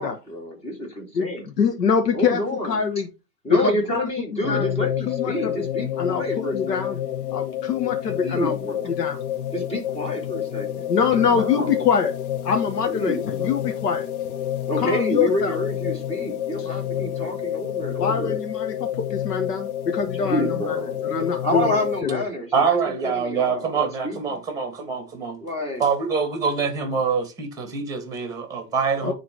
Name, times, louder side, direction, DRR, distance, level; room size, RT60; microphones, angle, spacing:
voice 1, 0.0-1.4 2.1-2.8 3.4-7.0 8.2-9.0 9.5-11.8 12.9-13.7 14.7-18.4 20.2-22.8 23.0-24.4 25.4-25.8, equal, 15° left, 2.6 m, -29 dB
voice 2, 1.1-3.1 3.5-5.6 6.0-6.2 6.5-7.0 7.3-8.5 8.9-9.2 10.9-12.1 12.4-14.1 14.8-15.6 18.0-20.8 21.0-21.8 22.0-22.2 29.0-29.1, left 6 dB, 80° left, 1.5 m, -24 dB
sound 1, 4.4-22.0, left 11 dB, 65° left, 1.1 m, -29 dB
voice 3, 22.5-25.4 25.8-29.1, right 5 dB, 5° right, 2.2 m, -25 dB
9.6 x 3.9 x 4.7 m
hypercardioid pair, 135°, 48 cm